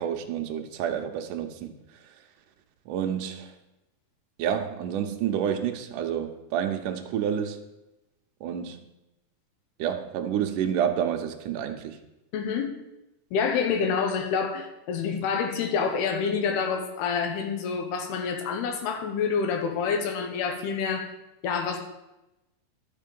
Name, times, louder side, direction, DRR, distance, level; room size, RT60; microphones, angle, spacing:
voice 1, 0.0-1.7 2.9-3.5 4.4-7.6 8.4-8.8 9.8-12.0, right 9 dB, 85° right, 5 dB, 1.8 m, -29 dB
voice 2, 12.3-12.7 13.3-21.1 21.4-21.8, left 6 dB, 75° left, 5 dB, 3.0 m, -27 dB
12.0 x 5.2 x 5.3 m, 0.95 s
omnidirectional pair, 4.7 m